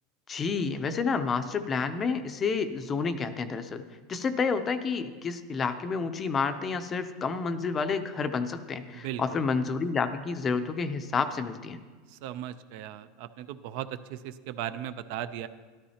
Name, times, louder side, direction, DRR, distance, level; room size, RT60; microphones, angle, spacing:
voice 1, 0.3-3.8 4.1-11.8, left 5 dB, 20° left, 10 dB, 0.5 m, -29 dB
voice 2, 8.9-9.4 12.1-15.5, right 11 dB, 55° right, 13 dB, 0.5 m, -37 dB
13.0 x 12.5 x 2.9 m, 1.5 s
supercardioid pair, 155°, 0 cm